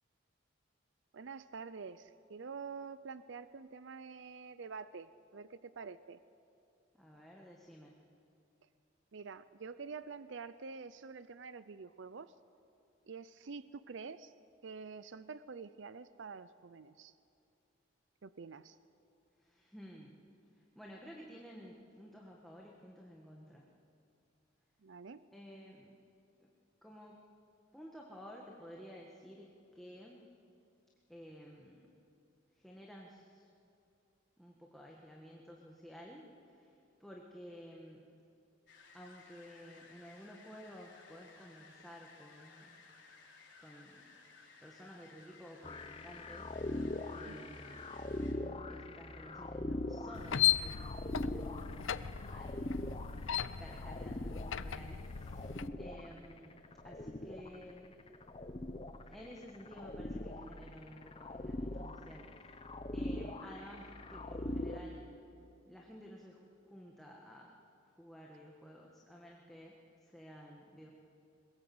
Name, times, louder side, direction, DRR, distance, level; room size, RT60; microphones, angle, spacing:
voice 1, 1.1-6.2 9.1-12.3 13.1-14.3 14.6-17.1 18.2-18.8 24.8-25.2 47.2-47.5, right 5 dB, 70° right, 14 dB, 0.5 m, -47 dB
voice 2, 6.9-8.0 19.4-20.2 20.5-23.7 25.3-26.0 26.4-26.5 26.8-27.3 27.7-30.2 31.1-31.8 32.5-33.5 34.4-38.1 38.9-42.8 43.6-44.0 44.6-47.8 48.2-52.7 53.2-58.0 59.1-62.6 62.9-65.1 65.7-67.6 67.8-69.8 70.0-70.9, equal, ahead, -2 dB, 1.6 m, -53 dB
sound 1, 38.7-48.3, left 4 dB, 65° left, 4.3 m, -59 dB
sound 2, 45.6-64.8, left 1 dB, 30° left, 0.9 m, -42 dB
sound 3, 50.1-55.7, left 10 dB, 80° left, 0.6 m, -36 dB
22.0 x 21.5 x 7.8 m, 2.6 s
head